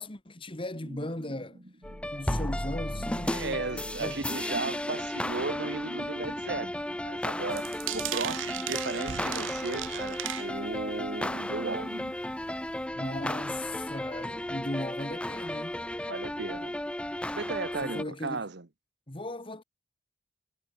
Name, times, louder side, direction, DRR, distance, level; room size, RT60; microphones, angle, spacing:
voice 1, 0.0-1.6 2.1-4.2 13.0-15.8 17.8-18.4 19.1-19.6, left 1 dB, 25° left, 1.9 m, -37 dB
sound 1, 0.7-12.2, right 1 dB, 40° right, 2.7 m, -48 dB
sound 2, 1.8-18.0, left 1 dB, 5° left, 0.8 m, -34 dB
voice 2, 3.2-11.9 16.1-16.8 17.1-18.7, right 3 dB, 60° right, 1.2 m, -36 dB
sound 3, 7.5-10.9 11.2-11.5 12.0-12.1 12.3-12.4, right 13 dB, 75° right, 0.6 m, -36 dB
head